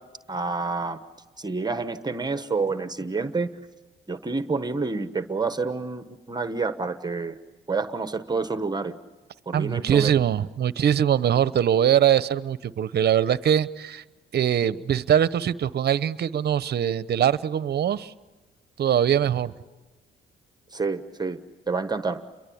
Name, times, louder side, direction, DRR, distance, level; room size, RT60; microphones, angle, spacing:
voice 1, 0.3-1.0 1.4-3.5 4.1-7.4 7.7-8.9 9.5-10.1 20.7-21.4 21.7-22.2, right 4 dB, 20° right, 10 dB, 1.2 m, -28 dB
voice 2, 9.5-14.0 14.3-18.1 18.8-19.5, right 9 dB, 55° right, 16 dB, 0.8 m, -22 dB
29.5 x 23.0 x 8.6 m, 1.2 s
cardioid pair, 90°, 20 cm